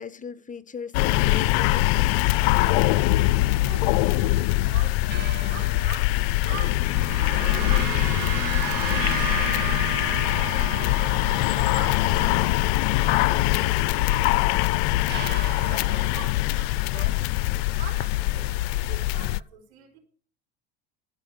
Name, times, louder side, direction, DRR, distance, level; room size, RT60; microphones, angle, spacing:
voice 1, 0.0-2.2, left 6 dB, 25° left, 1.1 m, -38 dB
sound 1, 0.9-19.4, left 18 dB, 70° left, 0.5 m, -23 dB
sound 2, 2.8-19.3, right 8 dB, 35° right, 0.9 m, -48 dB
voice 2, 3.6-6.2 6.4-11.0 11.5-14.5 15.1-20.0, right 8 dB, 85° right, 4.6 m, -44 dB
sound 3, 6.5-14.9, right 14 dB, 55° right, 1.1 m, -35 dB
14.5 x 5.4 x 8.8 m
supercardioid pair, 90°, 32 cm